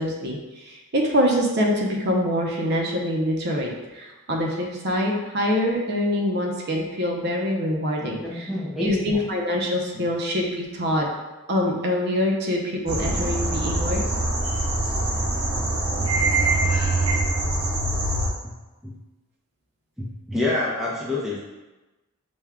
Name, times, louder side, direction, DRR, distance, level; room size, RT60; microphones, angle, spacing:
voice 1, 0.0-8.5 8.8-11.1 11.5-14.3, equal, 50° right, 0 dB, 0.6 m, -25 dB
voice 2, 7.9-9.0 9.9-10.1 14.8-14.9 18.4-18.5 18.8-18.9 20.0-21.4, left 2 dB, ahead, -6 dB, 0.6 m, -28 dB
sound 1, 12.9-18.3, right 2 dB, 80° right, 1.1 m, -23 dB
6.0 x 2.3 x 3.5 m, 1.1 s
head